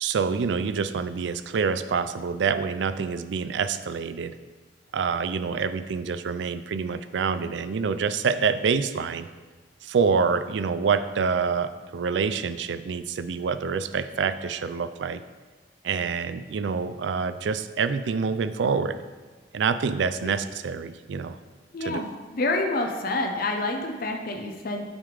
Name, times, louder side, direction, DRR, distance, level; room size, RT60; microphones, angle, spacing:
voice 1, 0.0-4.3 4.9-9.3 9.8-15.2 15.8-19.0 19.5-21.4 21.8-22.0, right 5 dB, 75° right, 12 dB, 0.4 m, -26 dB
voice 2, 21.7-24.8, left 2 dB, 55° left, 3 dB, 0.7 m, -28 dB
8.8 x 3.5 x 4.8 m, 1.4 s
head